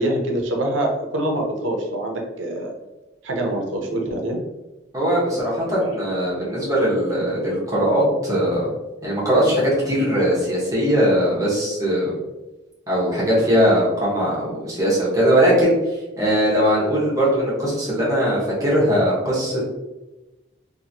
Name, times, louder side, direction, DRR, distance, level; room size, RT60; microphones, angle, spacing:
voice 1, 0.0-2.7 3.2-4.4, right 1 dB, 85° right, 2 dB, 0.6 m, -24 dB
voice 2, 4.9-8.7 9.0-12.2 12.9-15.7 16.2-19.6, equal, 15° right, -7 dB, 1.0 m, -20 dB
2.8 x 2.6 x 2.6 m, 1.1 s
head